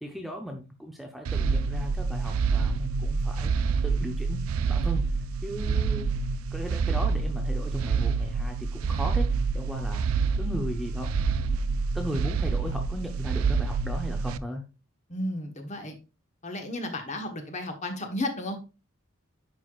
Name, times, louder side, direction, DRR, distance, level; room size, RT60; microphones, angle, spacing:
voice 1, 0.0-3.6 3.8-5.1 5.4-6.1 6.5-9.3 9.5-10.0 10.4-11.1 11.9-14.7, equal, ahead, 3 dB, 0.6 m, -36 dB
sound 1, 1.2-14.4, right 5 dB, 75° right, 0.4 m, -27 dB
voice 2, 15.1-16.0 16.4-18.6, left 1 dB, 35° left, 5 dB, 1.2 m, -33 dB
10.0 x 4.7 x 2.4 m, 0.30 s
head